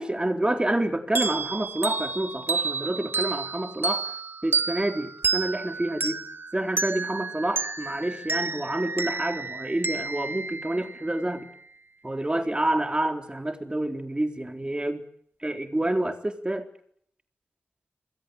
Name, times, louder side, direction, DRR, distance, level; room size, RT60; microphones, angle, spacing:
voice 1, 0.0-4.1 4.4-6.2 6.5-11.5 12.0-15.0 15.4-16.7, right 1 dB, 20° right, 6 dB, 3.8 m, -28 dB
sound 1, 1.2-11.4, right 4 dB, 60° right, 1.5 m, -30 dB
27.0 x 22.5 x 7.9 m, 0.66 s
wide cardioid pair, 70°, 4 cm